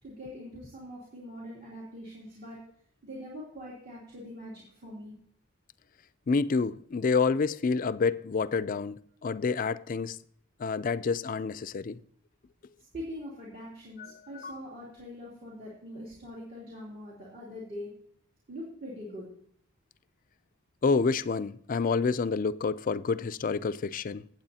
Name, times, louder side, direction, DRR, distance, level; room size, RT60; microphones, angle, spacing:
voice 1, 0.0-2.6 3.0-5.1 12.9-17.9 18.5-19.3, equal, 45° right, 2.9 m, -43 dB
voice 2, 6.3-10.2 10.6-12.0 14.0-14.6 20.8-24.3, left 4 dB, 40° left, 0.4 m, -28 dB
17.5 x 8.1 x 2.8 m
head